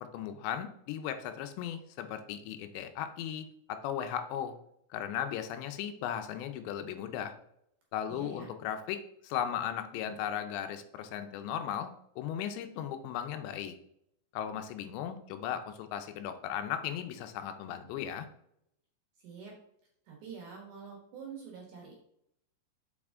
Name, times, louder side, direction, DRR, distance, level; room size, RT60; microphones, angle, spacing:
voice 1, 0.1-4.6 4.9-7.3 7.9-11.9 12.2-13.7 14.3-18.3, left 9 dB, 85° left, 8 dB, 2.8 m, -36 dB
voice 2, 8.1-8.5 19.2-19.5 20.1-21.9, right 6 dB, 60° right, -1 dB, 2.4 m, -46 dB
7.2 x 4.9 x 3.6 m, 0.73 s
omnidirectional pair, 5.1 m